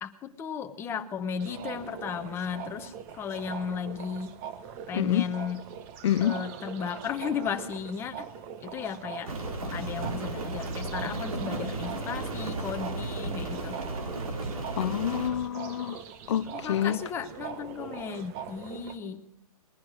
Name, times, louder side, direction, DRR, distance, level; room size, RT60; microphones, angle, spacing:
voice 1, 0.0-4.3 4.9-5.6 6.2-8.3 8.6-9.3 9.7-13.8 16.5-19.2, left 7 dB, 10° left, 0.9 m, -35 dB
sound 1, 1.4-19.0, right 8 dB, 25° right, 1.0 m, -42 dB
voice 2, 4.9-5.2 6.0-6.4 14.8-16.0 16.3-17.0, left 11 dB, 50° left, 0.5 m, -27 dB
Rain, 9.2-15.3, right 2 dB, 70° right, 4.4 m, -34 dB
21.0 x 10.5 x 6.3 m
hypercardioid pair, 150°, 19 cm